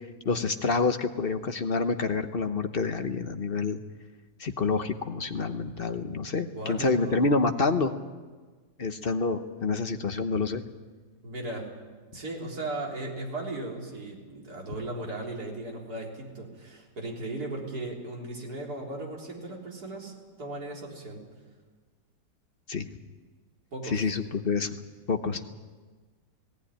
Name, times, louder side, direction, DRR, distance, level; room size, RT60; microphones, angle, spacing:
voice 1, 0.2-3.8 4.4-7.9 8.8-10.6 22.7-22.9 23.8-24.7 25.1-25.5, left 4 dB, 40° left, 8 dB, 1.0 m, -27 dB
voice 2, 6.6-7.2 11.2-11.7 12.1-21.2 23.7-24.1, right 2 dB, 55° right, -2 dB, 4.3 m, -37 dB
18.5 x 17.5 x 10.0 m, 1.4 s
omnidirectional pair, 1.9 m